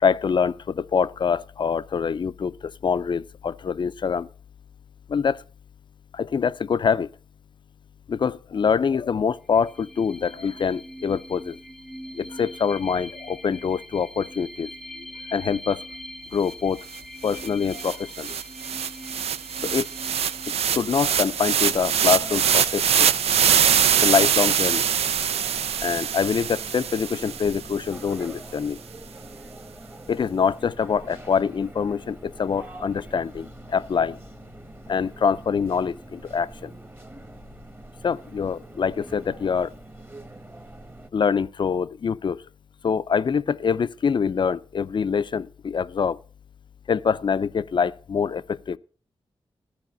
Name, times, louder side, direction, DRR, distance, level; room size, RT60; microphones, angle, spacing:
voice 1, 0.0-4.3 5.1-5.4 6.1-7.1 8.1-11.6 12.1-14.7 15.3-15.8 16.3-16.8 17.2-18.4 19.6-19.9 20.6-23.1 24.0-24.9 25.8-28.8 30.1-34.2 34.9-36.7 38.0-39.7 41.1-42.4 42.8-46.2 46.9-48.8, left 6 dB, 50° left, 0.4 m, -25 dB
sound 1, 9.5-22.8, equal, ahead, 0.6 m, -43 dB
sound 2, 17.0-17.1 17.3-27.7, right 8 dB, 90° right, 0.4 m, -23 dB
sound 3, 21.6-41.1, right 2 dB, 20° right, 1.2 m, -44 dB
13.5 x 4.8 x 7.7 m
wide cardioid pair, 85°, 10 cm